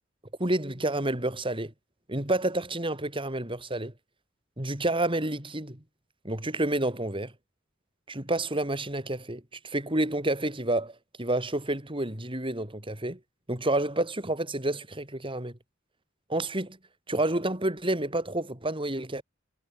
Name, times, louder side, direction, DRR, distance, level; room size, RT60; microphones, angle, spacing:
voice 1, 0.4-1.7 2.1-3.9 4.6-5.8 6.2-7.3 8.1-13.2 13.5-15.6 16.3-16.8 17.1-19.2, right 1 dB, 25° right, 4.6 m, -29 dB
head